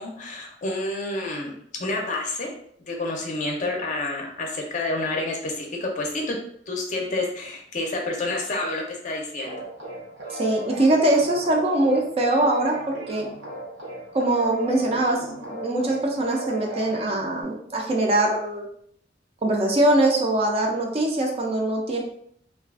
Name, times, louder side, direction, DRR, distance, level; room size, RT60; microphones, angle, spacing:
voice 1, 0.0-1.5 1.8-2.5 2.9-6.4 6.7-9.6, left 2 dB, 45° left, 0 dB, 0.5 m, -29 dB
sound 1, 9.4-17.4, right 2 dB, 70° right, 0.7 m, -37 dB
voice 2, 10.3-13.3 14.1-15.2 15.5-18.7 19.4-22.0, right 1 dB, 35° right, 1 dB, 0.4 m, -22 dB
2.4 x 2.3 x 2.3 m, 0.67 s
head